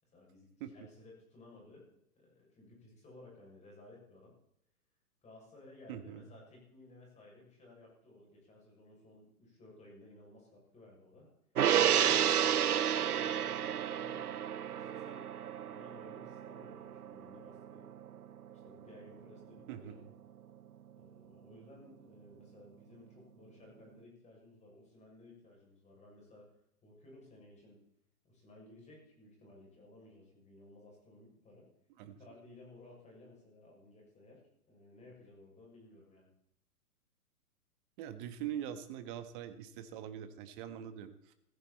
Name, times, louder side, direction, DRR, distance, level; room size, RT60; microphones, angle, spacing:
voice 1, 0.0-4.3 5.2-11.3 11.8-14.3 14.5-15.3 15.6-17.9 18.6-20.1 21.0-26.5 26.8-27.8 28.2-31.7 32.0-34.4 34.7-36.3, left 2 dB, 15° left, -2 dB, 7.1 m, -57 dB
voice 2, 5.9-6.3 19.7-20.0 32.0-32.2 38.0-41.3, right 10 dB, 35° right, 10 dB, 1.5 m, -43 dB
Gong, 11.6-18.2 18.5-18.7, right 9 dB, 70° right, 0.8 m, -31 dB
16.0 x 16.0 x 4.4 m, 0.78 s
figure-of-eight pair, 120°, 46 cm